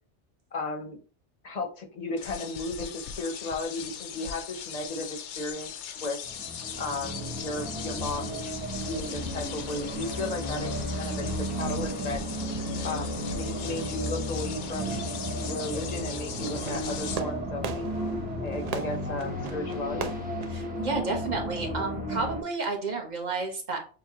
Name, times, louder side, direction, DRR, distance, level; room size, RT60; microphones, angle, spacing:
voice 1, 0.5-1.0 1.4-6.2 6.8-8.5 8.9-12.2 12.8-15.0 15.4-17.8 18.4-20.1, left 2 dB, 40° left, 4 dB, 0.7 m, -35 dB
sound 1, 2.2-17.2, left 8 dB, 85° left, 0.9 m, -39 dB
sound 2, 6.3-22.4, equal, 10° right, 0.7 m, -34 dB
Fireworks, 16.5-21.6, right 7 dB, 65° right, 0.4 m, -39 dB
voice 2, 20.5-23.8, right 3 dB, 40° right, 2 dB, 1.1 m, -31 dB
6.7 x 2.2 x 2.9 m, 0.37 s
omnidirectional pair, 1.2 m